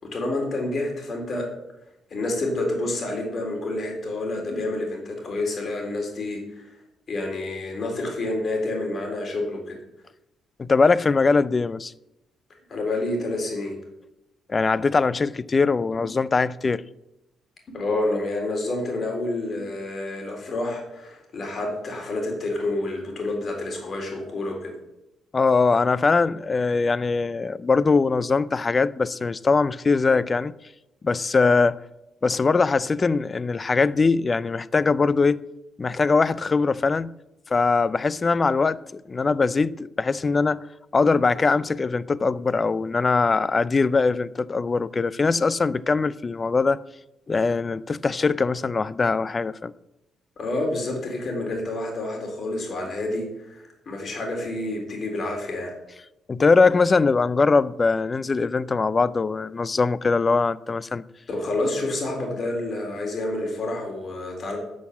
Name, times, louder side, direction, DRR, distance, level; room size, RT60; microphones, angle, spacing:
voice 1, 0.0-1.5 2.1-6.7 7.1-9.8 12.7-13.8 16.0-16.1 17.7-24.7 50.4-55.7 61.3-64.6, left 2 dB, 50° left, 3.9 m, -28 dB
voice 2, 10.6-11.9 14.5-16.8 25.3-30.5 31.0-31.8 32.2-35.5 35.8-37.1 37.5-40.6 40.9-46.8 47.3-49.7 56.3-61.0, left 4 dB, 30° left, 0.4 m, -21 dB
11.5 x 6.3 x 7.2 m
cardioid pair, 90°, 0 cm